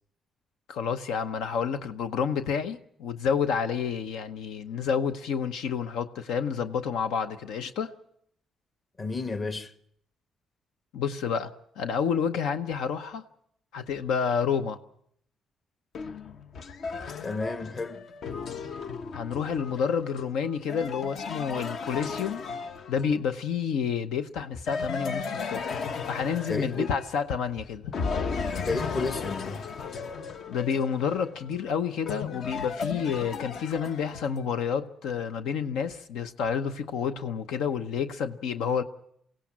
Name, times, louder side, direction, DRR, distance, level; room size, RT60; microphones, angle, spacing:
voice 1, 0.7-7.9 10.9-13.2 13.7-14.8 19.1-22.4 22.9-25.8 26.1-27.9 30.5-38.8, left 7 dB, 85° left, 0.8 m, -29 dB
voice 2, 9.0-9.7 17.2-18.0 26.5-26.9 28.7-29.6, left 3 dB, 40° left, 1.4 m, -31 dB
sound 1, 15.9-23.3 24.7-27.5 27.9-34.4, left 5 dB, 60° left, 1.0 m, -35 dB
22.5 x 16.5 x 7.3 m
cardioid pair, 90°, 0 cm